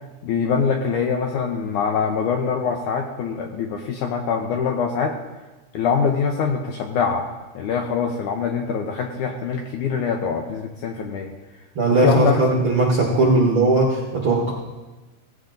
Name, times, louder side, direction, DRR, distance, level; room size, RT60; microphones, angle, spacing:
voice 1, 0.2-5.2 5.7-7.3 7.6-11.3 12.0-12.4, left 6 dB, 75° left, 3 dB, 1.9 m, -23 dB
voice 2, 11.7-14.5, right 2 dB, 55° right, -2 dB, 1.4 m, -18 dB
17.0 x 16.0 x 2.6 m, 1.2 s
omnidirectional pair, 4.3 m